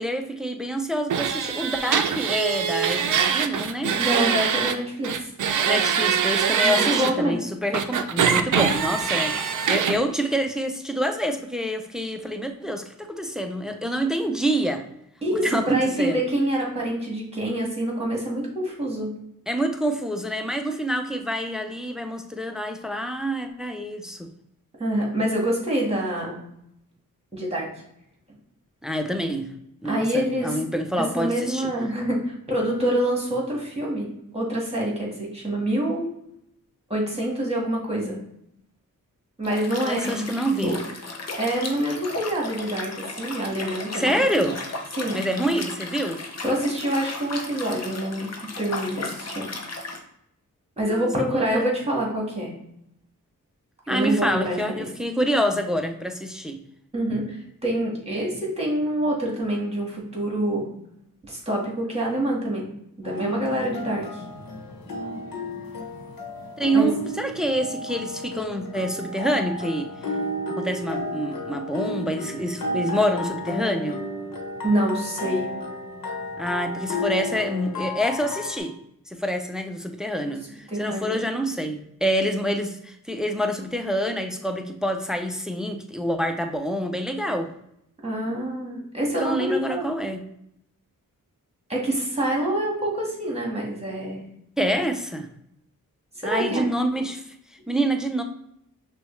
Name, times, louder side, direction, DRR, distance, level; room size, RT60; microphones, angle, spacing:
voice 1, 0.0-4.0 5.7-14.8 15.4-16.2 19.5-24.3 28.8-29.5 29.8-31.7 39.8-40.7 43.9-44.6 45.1-46.2 50.9-51.6 53.9-56.6 66.6-69.9 70.5-74.0 76.4-78.7 79.1-87.5 89.2-90.2 94.6-95.3 96.2-97.2 97.5-98.2, equal, ahead, 5 dB, 0.5 m, -27 dB
sound 1, 1.1-4.8 5.0-7.1 7.7-10.0, right 7 dB, 60° right, 0.5 m, -23 dB
voice 2, 4.0-5.3 6.6-7.4 15.2-19.1 24.8-26.4 27.3-27.7 29.9-30.6 31.2-36.1 36.9-38.2 39.4-40.3 40.5-40.8 41.4-44.2 44.9-45.2 46.4-49.5 50.8-52.5 53.9-54.9 56.9-60.7 61.2-62.7 63.0-64.2 66.7-66.9 74.6-75.5 80.7-81.2 88.0-89.9 91.7-94.2 96.2-96.6, right 1 dB, 20° right, -2 dB, 1.6 m, -26 dB
Liquid, 39.4-50.0, left 3 dB, 50° left, 0.8 m, -35 dB
sound 2, 63.0-78.6, left 1 dB, 75° left, 1.1 m, -32 dB
5.9 x 2.3 x 3.2 m, 0.76 s
cardioid pair, 70°, 34 cm